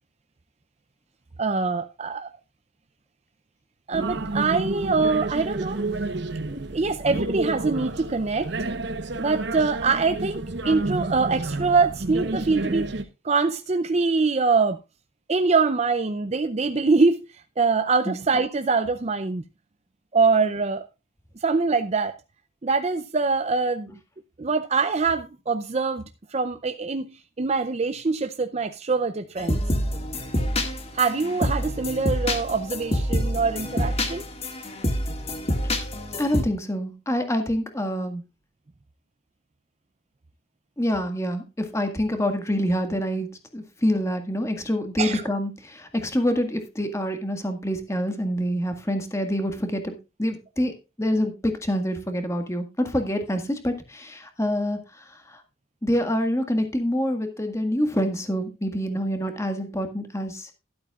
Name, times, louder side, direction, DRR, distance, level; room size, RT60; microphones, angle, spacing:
voice 1, 1.4-2.3 3.9-5.8 6.7-8.5 9.2-12.9 13.2-14.8 15.3-17.2 17.6-19.4 20.1-20.8 21.4-22.1 22.6-23.9 24.4-26.0 26.3-29.6 30.9-34.2 45.0-45.2, right 4 dB, 35° right, 0.5 m, -24 dB
sound 1, 3.9-13.0, right 2 dB, 60° right, 1.0 m, -30 dB
sound 2, 29.4-36.4, left 1 dB, 30° left, 1.9 m, -27 dB
voice 2, 36.2-38.2 40.8-49.9 50.2-55.4 55.8-60.5, equal, 15° left, 1.7 m, -26 dB
12.5 x 12.0 x 2.4 m
head